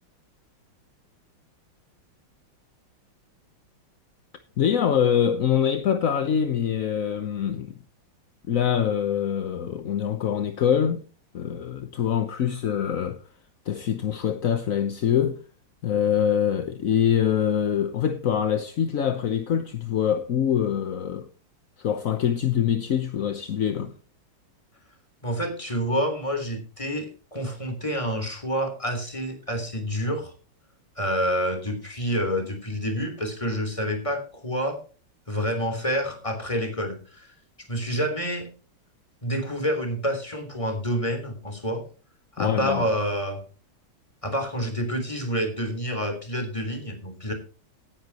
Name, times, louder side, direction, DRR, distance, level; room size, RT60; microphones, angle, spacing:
voice 1, 4.6-7.7 8.5-11.0 11.3-13.2 13.7-15.4 15.8-21.3 21.8-23.9 42.4-42.9, left 8 dB, 55° left, 1.0 m, -24 dB
voice 2, 25.2-30.3 31.0-34.8 35.3-37.3 37.7-38.5 39.2-41.8 42.3-43.4 44.2-47.3, equal, 15° left, 3.6 m, -28 dB
17.5 x 10.0 x 2.9 m
omnidirectional pair, 2.3 m